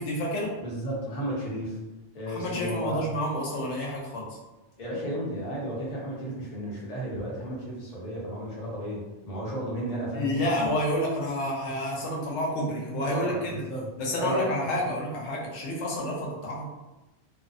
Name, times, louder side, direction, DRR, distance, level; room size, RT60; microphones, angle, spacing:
voice 1, 0.0-0.5 2.3-4.3 10.1-13.6 14.0-16.7, left 1 dB, 85° left, -2 dB, 1.0 m, -29 dB
voice 2, 0.6-1.8 2.1-3.0 4.8-10.5 13.0-13.9 14.2-14.8, right 1 dB, 40° left, -5 dB, 0.7 m, -33 dB
2.6 x 2.0 x 2.5 m, 1.0 s
omnidirectional pair, 1.2 m